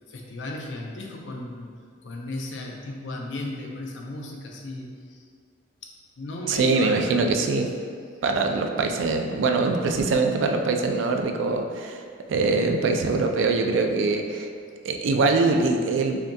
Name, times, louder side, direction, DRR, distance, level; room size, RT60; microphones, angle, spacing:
voice 1, 0.1-1.7 2.0-5.2 5.8-5.9 6.2-7.5, left 2 dB, 70° left, 1 dB, 0.5 m, -35 dB
voice 2, 6.5-7.7 8.2-12.0 12.3-14.5 14.8-16.2, right 3 dB, 75° right, 4 dB, 0.4 m, -23 dB
5.6 x 2.7 x 2.2 m, 2.1 s
head